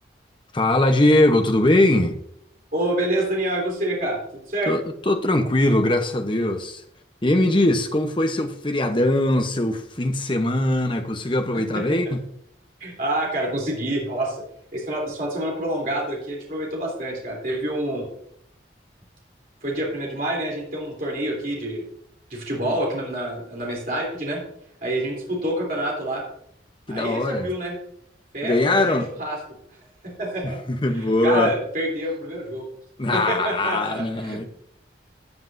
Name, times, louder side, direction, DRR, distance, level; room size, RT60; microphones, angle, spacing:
voice 1, 0.5-2.1 4.7-6.8 7.2-12.2 22.6-22.7 26.9-27.5 28.4-29.1 30.4-31.6 33.0-34.5, left 1 dB, 25° left, 0.9 m, -21 dB
voice 2, 2.7-4.2 4.5-4.7 11.7-11.8 12.8-14.4 14.7-18.0 19.6-21.8 22.3-24.4 24.8-26.2 26.9-27.7 28.3-29.4 30.0-30.6 30.9-32.6 33.1-34.5, right 1 dB, 50° right, 3.3 m, -27 dB
15.0 x 7.8 x 2.6 m
head